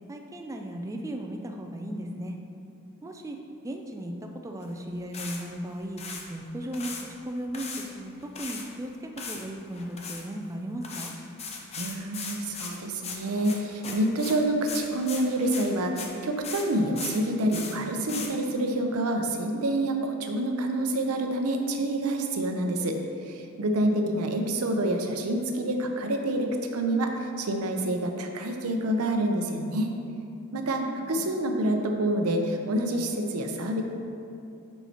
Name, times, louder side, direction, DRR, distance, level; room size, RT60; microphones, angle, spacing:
voice 1, 0.1-2.4 3.0-3.4 3.6-4.1 4.4-6.0 6.3-6.9 7.3-11.1 23.9-24.0 30.8-31.2, right 1 dB, 15° right, 3 dB, 0.3 m, -36 dB
sound 1, 4.6-4.7 5.1-5.4 5.8-6.2 6.6-7.0 7.5-8.7 9.2-9.5 9.7-10.2 10.8-16.2 16.4-16.7 17.0-17.2 17.5-17.8 18.1-18.3, left 5 dB, 30° left, 0.6 m, -38 dB
voice 2, 11.8-23.0 23.3-29.9 30.5-33.8, right 1 dB, 85° right, 4 dB, 0.6 m, -27 dB
7.0 x 5.6 x 2.8 m, 2.7 s
head